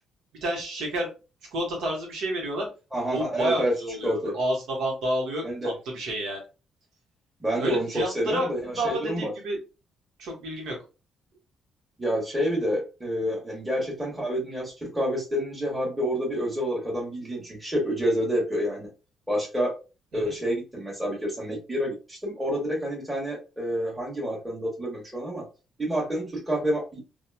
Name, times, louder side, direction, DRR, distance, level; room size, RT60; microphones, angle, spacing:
voice 1, 0.4-1.1 1.5-2.7 3.1-6.4 7.6-8.5 8.8-9.6 10.2-10.7 20.2-20.3, right 1 dB, 85° right, 0 dB, 1.1 m, -29 dB
voice 2, 2.9-4.3 5.4-5.7 7.4-9.3 12.0-18.9 19.3-19.7 20.1-25.4 25.8-27.0, equal, 10° right, -3 dB, 1.2 m, -28 dB
2.8 x 2.4 x 2.3 m, 0.31 s
cardioid pair, 90°, 0 cm